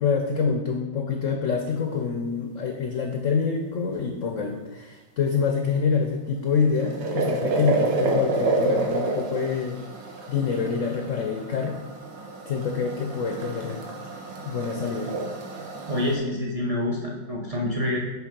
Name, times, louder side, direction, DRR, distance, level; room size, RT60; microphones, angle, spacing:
voice 1, 0.0-9.8 10.3-11.8 12.5-13.8 14.4-15.1, left 5 dB, 70° left, 4 dB, 0.7 m, -26 dB
sound 1, 6.4-16.2, right 3 dB, 75° right, 1.6 m, -29 dB
voice 2, 15.9-18.0, left 1 dB, 55° right, -2 dB, 0.4 m, -27 dB
8.2 x 3.4 x 5.0 m, 1.2 s
omnidirectional pair, 1.9 m